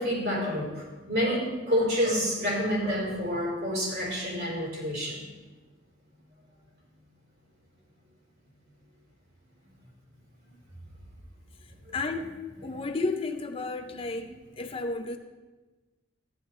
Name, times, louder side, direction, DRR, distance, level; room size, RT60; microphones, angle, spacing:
voice 1, 0.0-5.3 11.9-12.0, equal, 60° right, -5 dB, 4.1 m, -28 dB
voice 2, 11.6-12.3 12.6-15.2, left 3 dB, 30° left, 6 dB, 0.5 m, -33 dB
14.0 x 10.5 x 3.2 m, 1.2 s
head